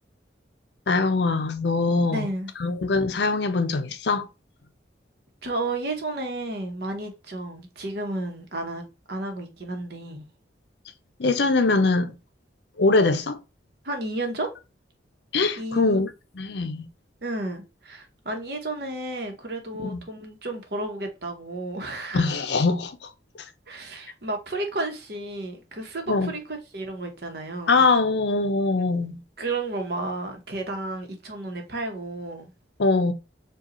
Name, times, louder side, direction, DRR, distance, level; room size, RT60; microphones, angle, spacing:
voice 1, 0.9-2.3 2.6-4.3 11.2-12.1 12.8-13.4 15.3-16.9 19.8-20.0 22.1-23.1 26.1-26.3 27.7-29.2 32.8-33.1, left 3 dB, 65° left, 0.5 m, -22 dB
voice 2, 2.0-2.5 5.4-10.2 13.8-14.6 15.6-16.0 17.2-22.3 23.7-27.8 29.4-32.4, right 2 dB, 55° right, 0.9 m, -32 dB
4.9 x 2.3 x 3.0 m
head